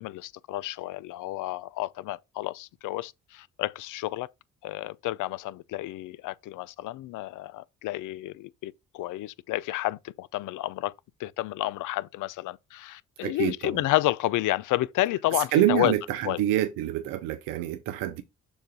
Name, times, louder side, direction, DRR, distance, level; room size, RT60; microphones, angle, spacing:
voice 1, 0.0-4.3 4.6-10.9 11.2-15.9 16.2-16.4, left 16 dB, 70° left, 0.5 m, -30 dB
voice 2, 13.2-13.8 15.3-18.2, right 13 dB, 85° right, 0.6 m, -27 dB
7.0 x 2.5 x 5.3 m
supercardioid pair, 60°, 32 cm